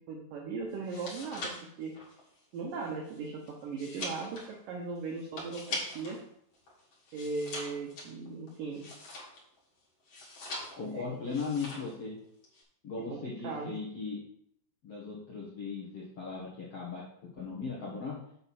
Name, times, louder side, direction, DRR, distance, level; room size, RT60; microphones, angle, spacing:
voice 1, 0.1-1.9 2.5-6.2 7.1-8.9 10.9-11.0 13.1-13.2 13.4-13.7, right 4 dB, 85° right, 0 dB, 1.9 m, -38 dB
sound 1, 0.7-6.2 6.5-9.6 10.1-11.0 11.3-12.0 12.2-12.6, left 2 dB, 45° left, 2.1 m, -42 dB
voice 2, 10.8-12.2 12.8-14.2 14.8-18.2, left 4 dB, 80° left, -6 dB, 1.3 m, -38 dB
7.6 x 6.7 x 4.2 m, 0.70 s
omnidirectional pair, 5.4 m